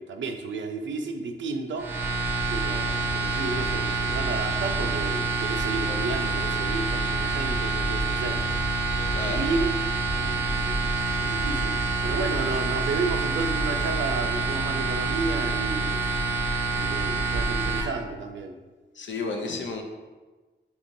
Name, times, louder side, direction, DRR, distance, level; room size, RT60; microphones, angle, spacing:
voice 1, 0.0-2.0 2.5-8.4 8.9-9.7 10.1-10.9 11.2-16.0 16.7-18.6, right 3 dB, 80° right, 5 dB, 0.4 m, -32 dB
sound 1, 1.8-17.8, right 3 dB, 10° right, 0.4 m, -27 dB
voice 2, 9.1-9.5 18.9-19.8, left 3 dB, 80° left, 3 dB, 0.6 m, -32 dB
5.2 x 2.9 x 2.6 m, 1.3 s
wide cardioid pair, 145°, 19 cm